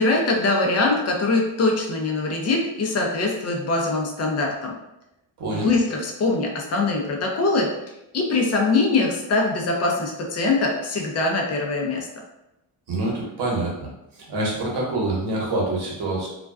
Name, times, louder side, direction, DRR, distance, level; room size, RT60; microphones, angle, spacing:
voice 1, 0.0-4.7 5.6-7.7 8.1-12.1, left 3 dB, 30° left, 0 dB, 0.6 m, -22 dB
voice 2, 5.4-5.7 12.9-13.9 14.1-16.3, right 2 dB, 50° right, -4 dB, 1.1 m, -26 dB
2.4 x 2.2 x 2.3 m, 0.89 s
cardioid pair, 70°, 50 cm